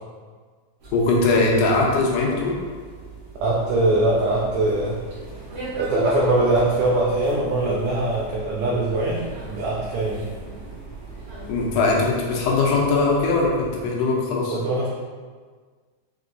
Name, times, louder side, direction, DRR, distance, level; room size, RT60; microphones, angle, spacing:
sound 1, 0.8-13.9, right 1 dB, 65° right, 1.1 m, -37 dB
voice 1, 0.9-2.5 11.5-14.6, left 3 dB, 80° left, -2 dB, 2.2 m, -20 dB
voice 2, 3.4-5.0 5.7-10.3 14.5-14.9, right 2 dB, 85° right, -4 dB, 1.6 m, -22 dB
sound 2, 3.6-12.1, right 2 dB, 40° right, 0.9 m, -43 dB
6.0 x 2.9 x 2.6 m, 1.6 s
omnidirectional pair, 3.8 m